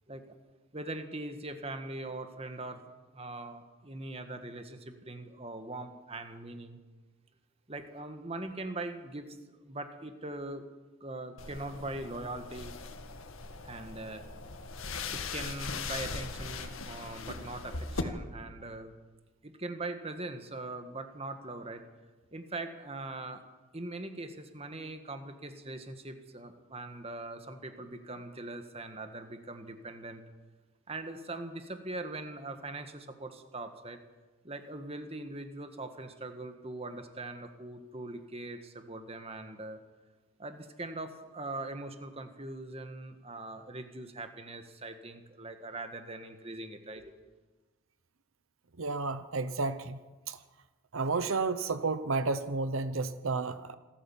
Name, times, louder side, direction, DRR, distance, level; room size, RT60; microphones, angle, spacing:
voice 1, 0.7-2.8 3.1-6.8 7.7-10.6 11.0-12.7 13.6-14.2 15.1-18.9 19.4-21.8 22.3-23.4 23.7-30.2 30.9-34.0 34.4-39.8 40.4-47.1, right 2 dB, 30° right, 7 dB, 1.6 m, -41 dB
sound 1, 11.4-18.0, left 4 dB, 75° left, 1.9 m, -39 dB
voice 2, 48.8-50.0 50.3-50.4 50.9-53.7, right 3 dB, 75° right, 11 dB, 0.9 m, -31 dB
26.5 x 13.5 x 7.3 m, 1.3 s
head